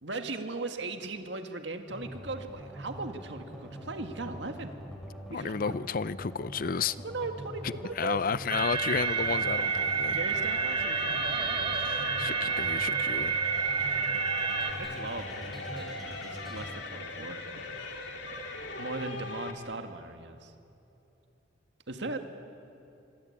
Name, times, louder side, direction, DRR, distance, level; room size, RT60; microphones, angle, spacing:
voice 1, 0.0-4.7 5.3-5.7 7.0-8.2 10.1-11.6 11.9-12.5 13.1-13.7 14.8-17.7 18.8-20.5 21.9-22.2, right 3 dB, 70° right, 6 dB, 1.9 m, -39 dB
sound 1, 1.9-16.7, equal, ahead, 4.9 m, -44 dB
voice 2, 5.3-7.0 8.0-10.2 11.7-13.4, left 5 dB, 50° left, 17 dB, 0.5 m, -32 dB
sound 2, 8.5-14.7, right 6 dB, 30° right, 2.4 m, -29 dB
sound 3, 8.6-19.5, left 2 dB, 75° left, 3.3 m, -40 dB
25.5 x 25.5 x 8.7 m, 2.9 s
head